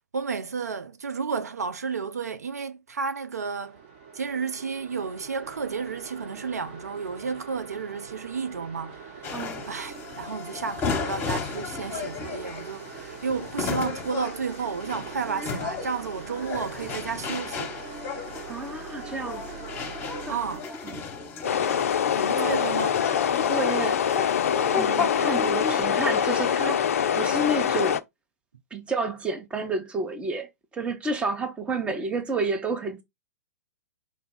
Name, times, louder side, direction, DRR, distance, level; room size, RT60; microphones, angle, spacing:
voice 1, 0.1-3.8 4.1-9.2 9.7-17.8 20.3-21.0 22.1-23.0, right 5 dB, 70° right, 0.5 m, -32 dB
sound 1, 3.6-20.6, right 6 dB, 40° right, 0.9 m, -43 dB
sound 2, 9.2-25.9, left 5 dB, 25° left, 1.0 m, -34 dB
voice 2, 9.3-9.6 18.5-19.4 20.3-20.4 20.8-21.0 22.3-22.5 23.3-24.0 24.8-26.8 27.1-28.0 28.7-33.0, right 3 dB, 10° right, 0.7 m, -30 dB
sound 3, 21.4-28.0, left 8 dB, 55° left, 0.4 m, -24 dB
4.5 x 2.3 x 3.8 m
figure-of-eight pair, 110°, 9 cm